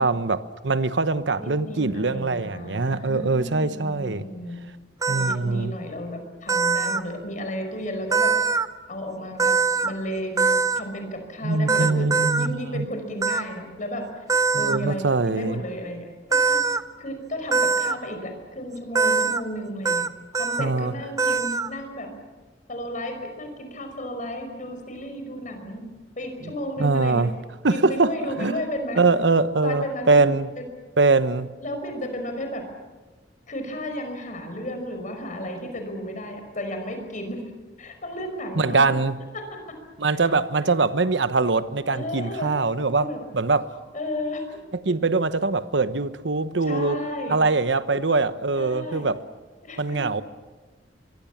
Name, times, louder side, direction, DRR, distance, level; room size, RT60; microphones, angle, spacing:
voice 1, 0.0-4.3 5.1-5.7 11.4-12.9 14.5-15.6 20.6-20.9 26.8-27.3 27.6-28.1 28.4-28.6 29.0-30.5 31.0-31.5 38.6-39.2 40.0-43.1 43.3-43.7 44.8-47.0 47.3-49.2 49.8-50.2, right 3 dB, 85° right, 1.1 m, -22 dB
voice 2, 1.4-4.6 5.1-8.3 8.9-9.5 9.8-12.1 12.4-14.0 14.5-16.1 16.5-16.6 17.0-20.0 20.4-22.1 22.7-25.8 26.2-27.3 27.7-29.0 29.6-30.7 31.6-32.6 33.5-37.4 37.8-38.8 39.3-39.8 40.1-40.2 40.6-40.7 41.9-42.5 43.0-43.2 43.9-44.5 46.7-47.4 48.5-49.0 49.6-50.1, equal, 45° left, 5.4 m, -33 dB
sound 1, 5.0-5.4 6.5-7.0 8.1-8.7 9.4-9.9 10.4-10.8 11.7-12.5 13.2-13.4 14.3-14.8 16.3-16.8 17.5-17.9 18.9-19.4 19.8-20.1 20.3-20.7 21.2-21.7, right 4 dB, 20° right, 0.7 m, -22 dB
25.0 x 22.5 x 7.3 m
head